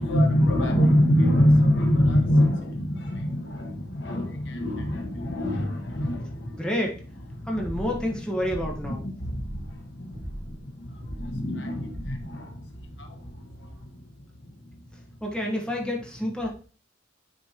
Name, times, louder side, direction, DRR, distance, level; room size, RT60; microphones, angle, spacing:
voice 1, 0.0-6.7 7.3-14.0, equal, 70° left, 4 dB, 1.2 m, -25 dB
voice 2, 6.5-6.9 7.5-9.0 15.2-16.5, left 1 dB, 5° left, -1 dB, 1.4 m, -28 dB
sound 1, 7.5-8.1 8.4-8.9 9.3-9.8 10.1-10.6 11.0-11.4 11.8-12.3, equal, 65° right, 2.8 m, -37 dB
9.2 x 4.4 x 2.9 m, 0.38 s
head